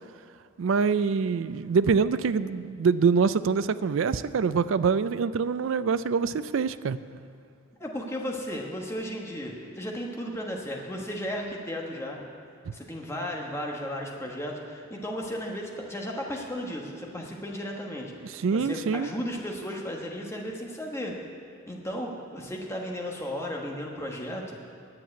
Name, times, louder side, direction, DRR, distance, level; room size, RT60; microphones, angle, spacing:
voice 1, 0.6-7.0 18.2-19.1, right 5 dB, 65° right, 14 dB, 0.4 m, -25 dB
voice 2, 7.8-12.2 12.7-18.1 18.5-21.2 21.7-24.6, equal, 10° left, -1 dB, 1.2 m, -35 dB
9.8 x 7.4 x 9.2 m, 2.3 s
head